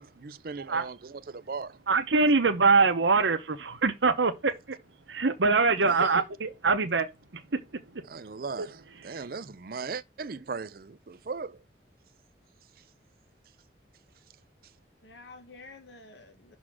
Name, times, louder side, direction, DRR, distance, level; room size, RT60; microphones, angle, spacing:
voice 1, 0.0-1.8 8.1-11.6, right 4 dB, 55° right, 0.5 m, -38 dB
voice 2, 1.9-4.8 5.1-7.1 7.3-8.1 8.6-8.7 9.0-9.2, right 4 dB, 90° right, 0.9 m, -24 dB
voice 3, 5.8-6.3 15.0-16.6, left 3 dB, 80° left, 1.4 m, -45 dB
6.2 x 4.0 x 6.1 m
head